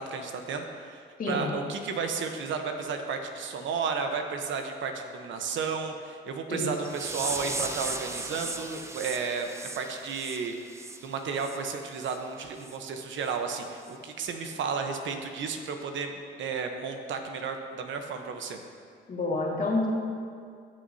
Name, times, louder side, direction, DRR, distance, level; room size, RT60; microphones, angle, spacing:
voice 1, 0.0-9.5 9.8-10.6 11.0-18.6, right 5 dB, 75° right, 5 dB, 1.0 m, -33 dB
voice 2, 1.2-1.5 6.5-6.7 19.1-19.9, left 2 dB, 45° left, -3 dB, 2.0 m, -28 dB
sound 1, 6.8-11.6 11.9-12.2 12.6-12.8 13.2-13.4 13.9-14.0, right 2 dB, 15° right, 0.6 m, -37 dB
15.5 x 6.4 x 2.8 m, 2.2 s
cardioid pair, 90°, 20 cm